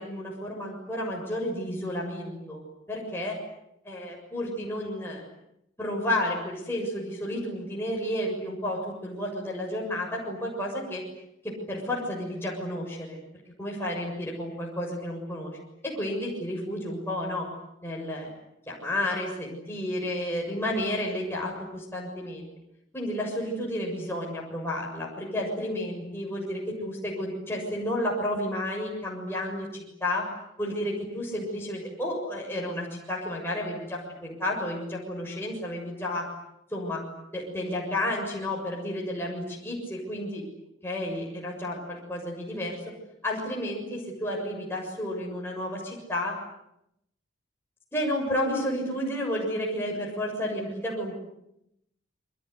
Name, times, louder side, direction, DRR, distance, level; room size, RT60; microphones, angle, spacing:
voice 1, 0.0-2.6 2.9-3.4 3.8-5.2 5.8-11.0 11.4-13.2 13.6-15.5 15.8-17.5 17.8-18.3 18.7-22.5 22.9-30.3 30.6-36.3 36.7-37.0 37.3-40.4 40.8-42.8 43.2-46.4 47.9-51.2, left 1 dB, 10° left, -3 dB, 7.0 m, -31 dB
29.0 x 25.0 x 8.2 m, 0.80 s
head